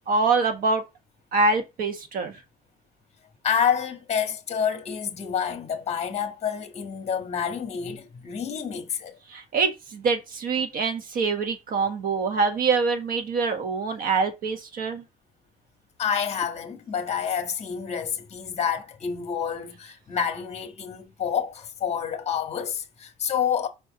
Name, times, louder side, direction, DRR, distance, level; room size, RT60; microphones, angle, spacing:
voice 1, 0.1-0.8 1.3-2.3 9.3-15.0, right 4 dB, 55° right, 1.5 m, -25 dB
voice 2, 3.4-9.2 16.0-23.7, left 7 dB, 40° left, 1.5 m, -28 dB
5.5 x 4.4 x 4.1 m
cardioid pair, 110°, 17 cm